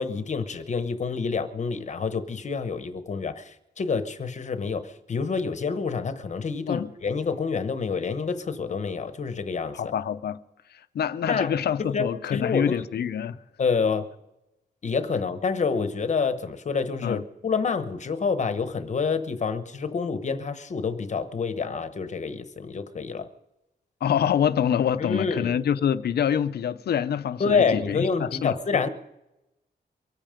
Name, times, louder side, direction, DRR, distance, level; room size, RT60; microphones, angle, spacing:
voice 1, 0.0-9.9 11.3-11.5 11.9-12.1 12.3-12.8 13.6-14.1 14.8-23.3 25.0-25.6 27.4-28.9, left 5 dB, 40° left, 0.9 m, -27 dB
voice 2, 9.7-10.4 10.9-13.4 17.0-17.2 24.0-28.8, left 8 dB, 65° left, 0.6 m, -26 dB
24.0 x 9.1 x 5.1 m
wide cardioid pair, 175°, 18 cm